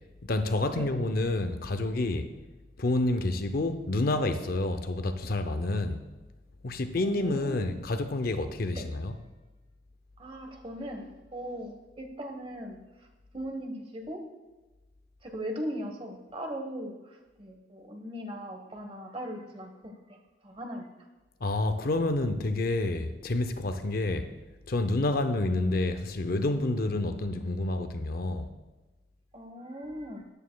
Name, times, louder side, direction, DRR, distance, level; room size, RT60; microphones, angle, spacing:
voice 1, 0.2-2.3 2.8-6.0 6.6-9.2 21.4-24.3 24.7-28.5, left 2 dB, 50° left, 8 dB, 0.6 m, -28 dB
voice 2, 7.0-7.7 8.7-8.9 10.2-12.8 13.3-14.2 15.2-20.2 20.4-20.9 29.3-30.2, equal, 30° right, 3 dB, 1.1 m, -39 dB
13.5 x 9.3 x 2.3 m, 1.2 s
head